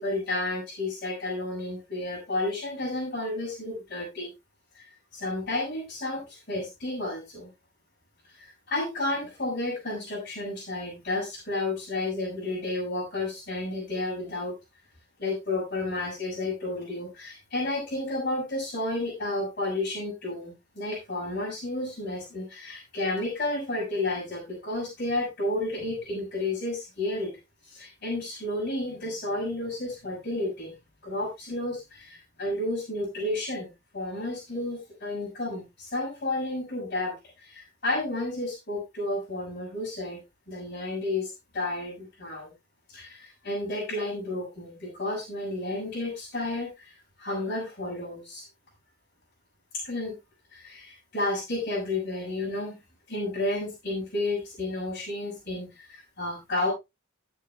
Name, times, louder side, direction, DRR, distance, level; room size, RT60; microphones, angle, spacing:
voice 1, 0.0-4.3 4.7-7.5 8.2-14.5 15.2-27.3 27.6-30.7 31.0-40.2 40.5-42.5 42.9-48.4 49.7-50.2 50.5-52.8 53.1-56.7, left 2 dB, 50° left, -7 dB, 6.4 m, -32 dB
20.5 x 7.5 x 2.3 m, 0.23 s
head